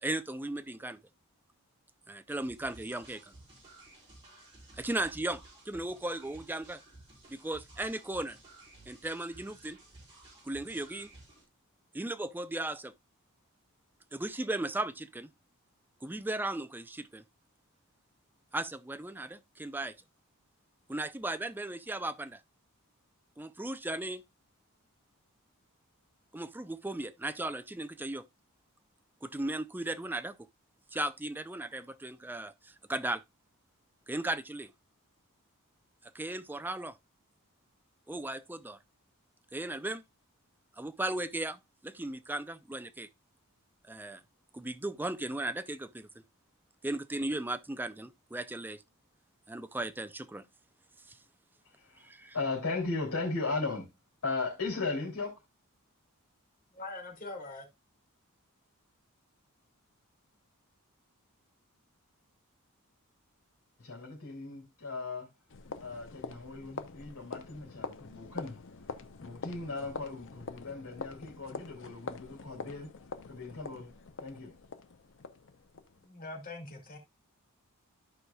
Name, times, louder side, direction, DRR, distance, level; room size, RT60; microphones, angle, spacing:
voice 1, 0.0-1.0 2.1-3.3 4.8-6.8 7.3-8.4 8.9-9.8 10.4-11.1 11.9-12.9 14.1-15.3 16.0-17.2 18.5-19.9 20.9-22.4 23.4-24.2 26.3-28.2 29.2-30.4 30.9-33.2 34.1-34.7 36.1-37.0 38.1-38.8 39.5-40.0 40.8-43.1 43.9-44.2 44.5-46.1 46.8-48.8 49.5-50.4 51.1-51.2 52.0-52.3, right 2 dB, 10° right, 0.4 m, -36 dB
sound 1, 2.3-11.5, right 2 dB, 25° right, 4.4 m, -55 dB
voice 2, 51.7-52.1 52.3-53.9 54.2-55.4 63.8-65.3 65.8-68.6 69.2-72.9 73.3-73.9 74.2-74.5, left 3 dB, 75° left, 3.0 m, -37 dB
voice 3, 56.7-57.6 76.0-77.0, left 2 dB, 40° left, 2.1 m, -43 dB
sound 2, 65.5-76.1, left 4 dB, 60° left, 0.7 m, -45 dB
14.0 x 4.7 x 2.3 m
head